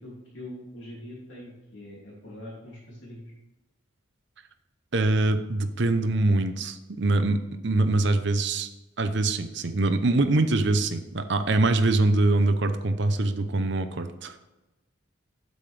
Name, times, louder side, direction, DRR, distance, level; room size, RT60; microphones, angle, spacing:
voice 1, 0.0-3.3, left 1 dB, 65° left, -6 dB, 2.8 m, -43 dB
voice 2, 4.9-8.7 9.0-14.4, right 2 dB, 60° right, 9 dB, 0.8 m, -24 dB
9.4 x 7.7 x 3.4 m, 1.0 s
head